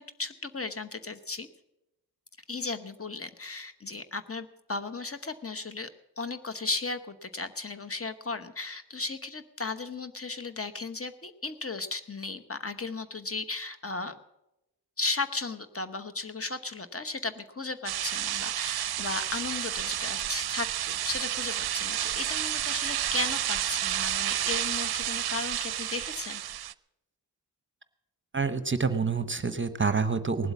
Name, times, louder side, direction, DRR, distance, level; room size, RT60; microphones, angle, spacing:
voice 1, 0.0-1.5 2.5-5.9 6.2-14.2 15.0-26.4, left 3 dB, 35° left, 10 dB, 1.0 m, -35 dB
sound 1, 17.9-26.7, right 12 dB, 70° right, 0.5 m, -31 dB
voice 2, 28.3-30.5, right 4 dB, 30° right, 12 dB, 0.9 m, -27 dB
18.5 x 7.9 x 7.2 m, 0.91 s
cardioid pair, 40°, 40 cm